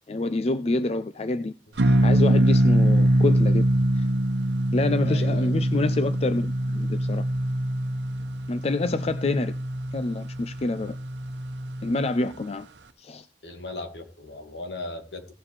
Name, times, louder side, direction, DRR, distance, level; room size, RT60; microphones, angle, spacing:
voice 1, 0.1-1.5 1.8-3.7 4.0-4.1 4.7-7.2 8.5-9.5 9.9-10.9 11.8-12.7 13.0-13.3, left 2 dB, 35° left, 0.4 m, -27 dB
sound 1, 1.8-12.3, right 1 dB, 85° right, 0.9 m, -23 dB
voice 2, 5.0-5.5 13.4-15.3, left 2 dB, 75° left, 2.1 m, -37 dB
17.5 x 7.3 x 3.3 m
head